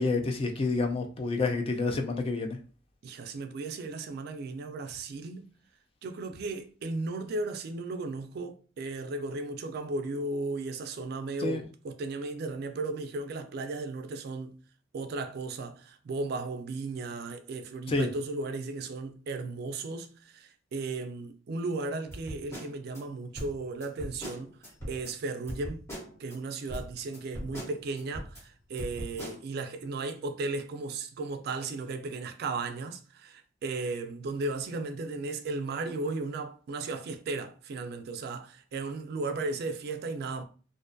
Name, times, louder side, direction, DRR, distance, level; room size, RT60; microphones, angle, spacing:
voice 1, 0.0-2.6 11.4-11.6 17.9-18.1, left 3 dB, 30° left, 0.4 m, -28 dB
voice 2, 3.0-5.5 6.0-14.6 14.9-24.6 24.9-25.9 26.2-40.4, right 3 dB, 55° right, 0.3 m, -35 dB
sound 1, 22.1-23.0 23.4-25.1 25.5-26.4 26.7-28.4 28.8-29.4, equal, 15° left, 1.0 m, -40 dB
2.5 x 2.2 x 2.5 m
head